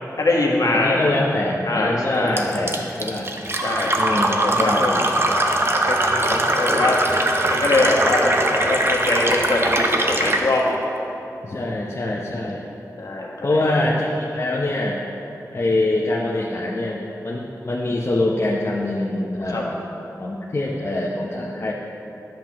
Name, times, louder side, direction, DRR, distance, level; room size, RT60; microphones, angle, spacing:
voice 1, 0.2-1.2 1.6-2.4 3.6-5.0 5.7-7.0 7.5-10.8 13.0-13.7 19.4-19.6, left 2 dB, 65° left, -3 dB, 1.4 m, -22 dB
voice 2, 0.7-3.3 4.0-5.1 11.4-12.6 13.4-15.0 15.5-19.8 20.2-21.7, left 2 dB, 40° left, -4 dB, 0.8 m, -24 dB
Fill (with liquid), 2.4-10.5, right 1 dB, 40° right, 0.7 m, -21 dB
10.5 x 7.5 x 3.0 m, 3.0 s
cardioid pair, 50°, 7 cm